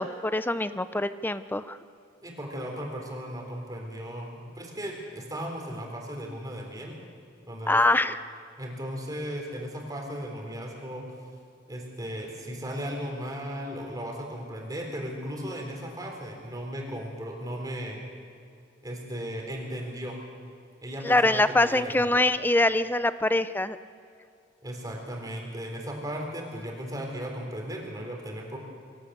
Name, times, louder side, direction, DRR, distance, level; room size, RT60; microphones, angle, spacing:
voice 1, 0.0-1.8 7.7-8.2 21.0-23.8, left 2 dB, 10° left, 13 dB, 0.6 m, -24 dB
voice 2, 2.2-7.0 7.5-7.8 8.6-11.1 11.7-18.0 18.8-20.2 20.8-22.2 24.6-28.6, equal, 20° right, 0 dB, 4.2 m, -36 dB
25.0 x 15.0 x 8.2 m, 2.4 s
head